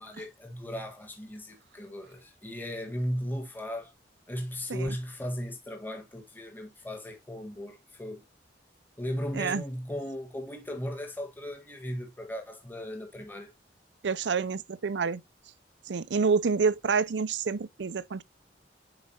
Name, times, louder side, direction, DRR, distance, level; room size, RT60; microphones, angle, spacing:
voice 1, 0.0-3.9 4.3-8.2 9.0-13.5, equal, 10° left, 1.6 m, -36 dB
voice 2, 14.0-15.2 15.9-18.2, right 5 dB, 90° right, 0.6 m, -28 dB
9.6 x 4.8 x 2.8 m
head